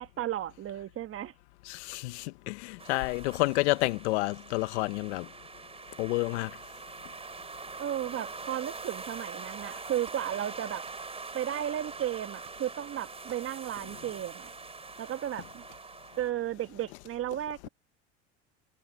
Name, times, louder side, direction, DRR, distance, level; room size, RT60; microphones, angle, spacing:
voice 1, 0.0-1.3 7.8-10.8 11.3-14.5 15.0-15.6 16.2-17.7, right 11 dB, 40° right, 1.4 m, -34 dB
voice 2, 1.6-5.3 6.0-6.5 17.6-17.7, left 21 dB, 75° left, 1.1 m, -29 dB
sound 1, 2.8-16.3, right 4 dB, 15° right, 3.9 m, -44 dB
sound 2, 10.0-10.3 10.8-11.1 11.5-11.7 12.4-12.7 13.3-13.6 14.4-14.6 15.7-15.9, right 30 dB, 75° right, 6.6 m, -58 dB
hypercardioid pair, 90°, 33 cm